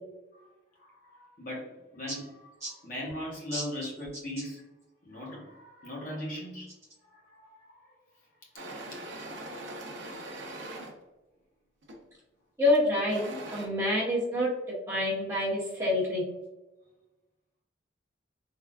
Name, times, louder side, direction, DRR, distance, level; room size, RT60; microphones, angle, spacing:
voice 1, 0.8-1.7 1.9-4.6 5.0-6.7 7.1-8.0, left 1 dB, 45° left, -3 dB, 0.9 m, -39 dB
sound 1, 8.6-11.0 11.8-12.1 12.8-13.7, right 1 dB, 70° right, 0.6 m, -41 dB
voice 2, 12.6-14.5 14.9-16.2, left 1 dB, 15° right, -8 dB, 0.9 m, -27 dB
3.6 x 2.3 x 2.3 m, 1.1 s
head